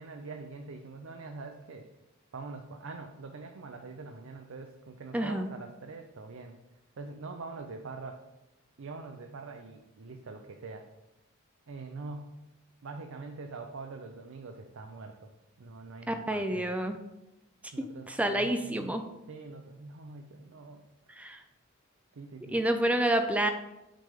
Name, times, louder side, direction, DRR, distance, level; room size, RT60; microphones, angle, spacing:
voice 1, 0.0-1.9 2.3-6.6 7.0-8.2 8.8-10.9 11.7-12.4 12.8-15.3 15.6-16.7 17.7-18.9 19.3-21.4 22.1-22.6, right 3 dB, 70° right, 4 dB, 0.5 m, -44 dB
voice 2, 5.1-5.5 16.1-17.0 18.1-19.0 21.1-21.4 22.5-23.5, right 1 dB, 5° right, 7 dB, 0.4 m, -28 dB
7.6 x 3.3 x 4.9 m, 0.94 s
head